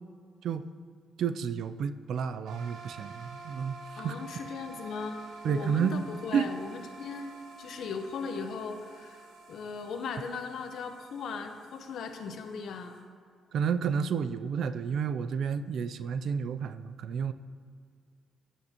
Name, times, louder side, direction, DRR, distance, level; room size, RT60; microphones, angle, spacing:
voice 1, 1.2-4.1 5.4-6.0 6.3-6.5 13.5-17.3, right 7 dB, 65° right, 12 dB, 0.4 m, -30 dB
sound 1, 2.5-13.0, right 3 dB, 85° right, 1.1 m, -49 dB
voice 2, 4.0-9.2 9.5-12.9, left 5 dB, 70° left, 6 dB, 0.9 m, -38 dB
9.6 x 9.2 x 2.9 m, 2.2 s
cardioid pair, 90°, 0 cm